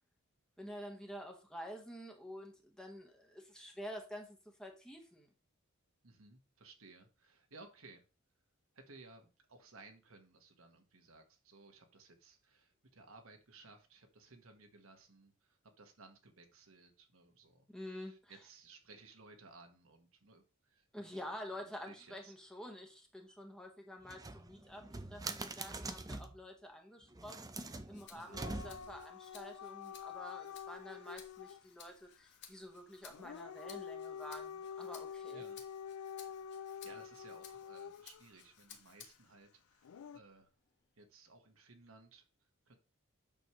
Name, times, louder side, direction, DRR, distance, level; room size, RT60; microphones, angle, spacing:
voice 1, 0.6-5.3 17.7-18.3 20.9-24.8 25.1-35.4, equal, 5° left, 2 dB, 1.3 m, -49 dB
voice 2, 6.0-8.0 8.7-22.3 28.1-28.4 35.3-35.6 36.5-40.5 41.0-42.8, right 3 dB, 70° right, 4 dB, 1.5 m, -59 dB
sound 1, 24.0-26.4 27.1-29.0, right 3 dB, 15° right, 0.6 m, -44 dB
Rattle (instrument), 27.9-39.4 39.8-41.0, left 7 dB, 50° left, 1.5 m, -60 dB
Dog / Siren, 28.3-31.6 33.1-38.2 39.8-40.2, left 7 dB, 80° left, 0.4 m, -47 dB
9.1 x 6.3 x 3.1 m, 0.32 s
head